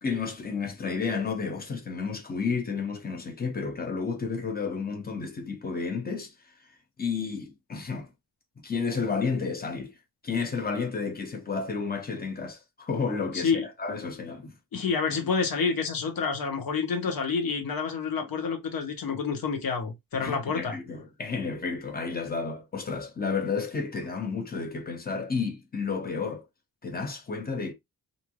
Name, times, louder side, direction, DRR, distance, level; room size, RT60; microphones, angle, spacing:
voice 1, 0.0-6.3 7.0-8.1 8.6-9.9 10.2-14.5 20.2-26.4 26.8-27.7, left 5 dB, 25° left, 0.6 m, -31 dB
voice 2, 13.3-13.6 14.7-20.7, left 5 dB, 70° left, 1.0 m, -28 dB
3.1 x 2.6 x 2.2 m
wide cardioid pair, 175°, 36 cm